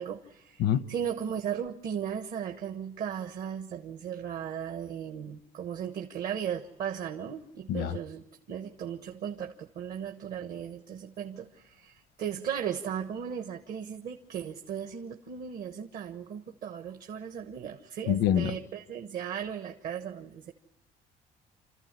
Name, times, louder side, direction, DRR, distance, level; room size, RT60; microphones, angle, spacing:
voice 1, 0.0-20.5, right 8 dB, 65° right, 1.3 m, -36 dB
voice 2, 18.1-18.5, left 10 dB, 90° left, 0.9 m, -25 dB
28.0 x 14.5 x 9.7 m
cardioid pair, 120°, 16 cm